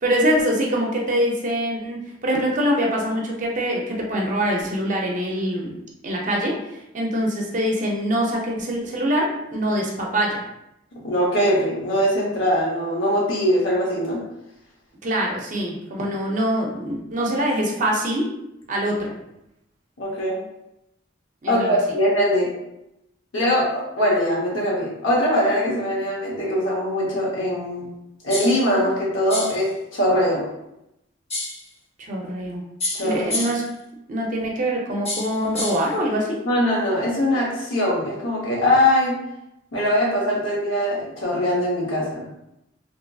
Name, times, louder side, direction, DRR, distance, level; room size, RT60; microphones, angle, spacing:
voice 1, 0.0-5.7 6.0-6.6 6.9-10.4 15.0-18.3 18.7-19.1 21.4-21.8 32.0-32.6 33.0-33.6 34.1-36.4, equal, 40° right, -1 dB, 0.5 m, -24 dB
voice 2, 11.0-14.2 20.0-20.4 21.5-22.5 23.3-27.9 28.2-30.4 32.9-33.4 36.4-39.2 39.7-42.2, equal, 80° left, -5 dB, 0.8 m, -21 dB
sound 1, 28.3-28.6 29.3-29.6 31.3-31.6 32.8-33.7 35.0-35.9, left 2 dB, 30° left, 0.5 m, -29 dB
2.8 x 2.5 x 2.2 m, 0.85 s
head